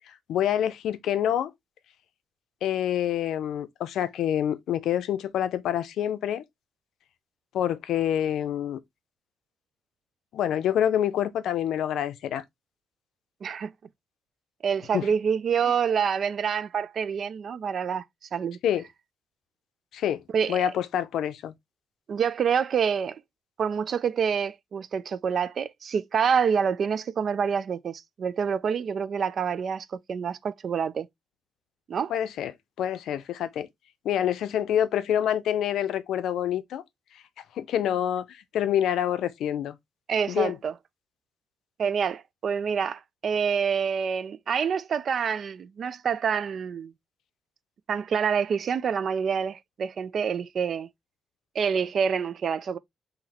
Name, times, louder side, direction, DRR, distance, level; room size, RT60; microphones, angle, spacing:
voice 1, 0.1-1.5 2.6-6.4 7.5-8.8 10.3-12.4 14.9-15.0 18.6-18.8 19.9-20.2 20.5-21.5 32.1-32.5 32.8-33.7 34.0-36.8 37.6-39.8 40.3-40.6, left 10 dB, 80° left, 0.6 m, -27 dB
voice 2, 13.4-13.7 14.6-18.0 18.3-18.6 20.3-20.6 22.1-23.2 23.6-31.1 31.9-32.1 40.1-40.7 41.8-46.9 47.9-50.9 51.5-52.8, right 7 dB, 45° right, 0.4 m, -27 dB
4.0 x 2.8 x 4.2 m
cardioid pair, 175°, 0 cm